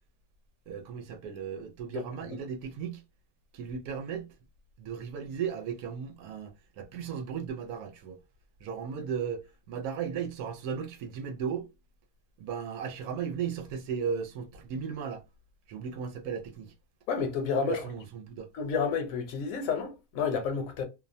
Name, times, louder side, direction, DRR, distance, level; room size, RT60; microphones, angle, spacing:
voice 1, 0.7-3.0 3.5-4.3 4.8-8.2 8.6-11.7 12.4-15.2 15.7-16.7 17.7-18.5, right 7 dB, 90° right, 1.1 m, -36 dB
voice 2, 17.1-17.8 18.5-20.8, left 6 dB, 70° left, 1.1 m, -30 dB
2.6 x 2.1 x 2.5 m
omnidirectional pair, 1.5 m